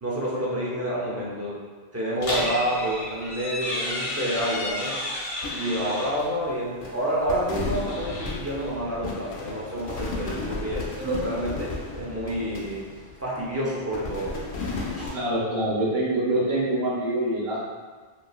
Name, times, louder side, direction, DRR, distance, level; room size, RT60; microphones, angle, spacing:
voice 1, 0.0-1.7 1.9-5.0 5.5-10.8 11.2-11.7 11.9-14.4 14.8-15.2, equal, 25° right, -6 dB, 0.4 m, -29 dB
sound 1, 2.2-6.3 7.6-8.7, left 1 dB, 45° left, 0.5 m, -32 dB
sound 2, 5.4-6.5 6.8-13.5 13.9-15.1, left 3 dB, 85° left, 0.9 m, -34 dB
voice 2, 15.1-17.6, right 1 dB, 80° right, -5 dB, 1.1 m, -25 dB
3.0 x 2.9 x 2.3 m, 1.4 s
omnidirectional pair, 1.0 m